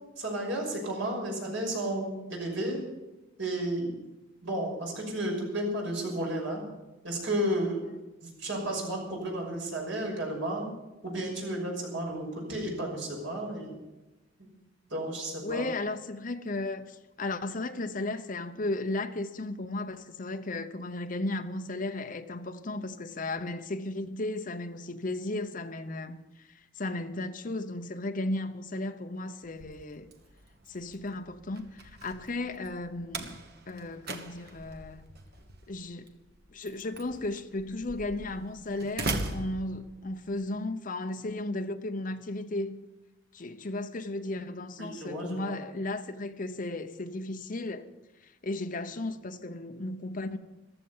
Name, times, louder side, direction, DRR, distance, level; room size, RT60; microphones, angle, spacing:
voice 1, 0.2-2.8 3.4-3.9 4.4-6.6 7.0-7.9 8.2-10.7 11.0-13.8 14.4-14.5 14.9-15.7 44.8-45.5, right 1 dB, 70° right, 6.1 m, -32 dB
voice 2, 15.4-26.5 26.8-30.1 30.7-33.4 33.7-35.1 35.7-36.1 36.5-42.8 43.3-47.9 48.2-50.4, left 2 dB, 40° left, 0.8 m, -35 dB
Slam, 29.4-40.3, right 2 dB, 50° right, 1.3 m, -41 dB
15.0 x 13.0 x 5.6 m
head